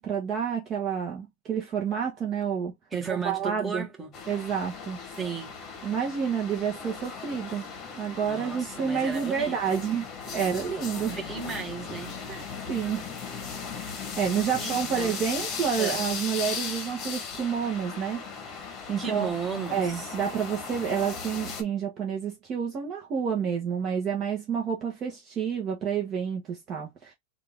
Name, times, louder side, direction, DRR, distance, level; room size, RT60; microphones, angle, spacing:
voice 1, 0.0-2.7 3.1-3.8 4.3-5.0 5.8-7.6 8.0-10.0 10.3-11.1 12.3-12.4 12.7-13.1 13.8-18.2 18.9-19.3 19.7-27.1, right 7 dB, 30° right, 1.1 m, -29 dB
voice 2, 2.9-4.1 5.1-5.6 8.2-9.8 11.1-12.1 14.6-15.2 15.8-16.0 19.0-20.1, right 6 dB, 10° right, 1.4 m, -35 dB
sound 1, 4.1-21.6, left 5 dB, 30° left, 1.1 m, -37 dB
3.6 x 2.5 x 3.5 m
supercardioid pair, 145°, 0 cm